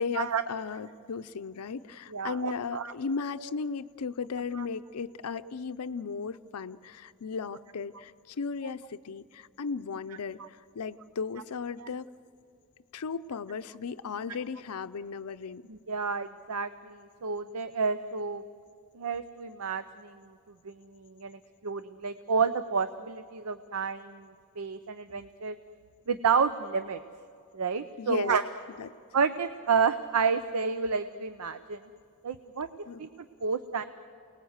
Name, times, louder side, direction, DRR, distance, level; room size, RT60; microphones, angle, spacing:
voice 1, 0.0-12.1 12.9-15.7 28.0-28.3 28.8-28.9 32.9-33.0, left 5 dB, 90° left, 12 dB, 0.5 m, -36 dB
voice 2, 2.1-2.9 11.8-11.9 15.7-18.4 18.9-20.3 20.6-24.3 24.6-25.6 26.1-27.0 27.5-28.4 29.1-31.8 32.2-32.7 33.0-33.1 33.4-33.9, right 5 dB, 80° right, 12 dB, 0.6 m, -30 dB
29.0 x 19.5 x 8.0 m, 2.4 s
head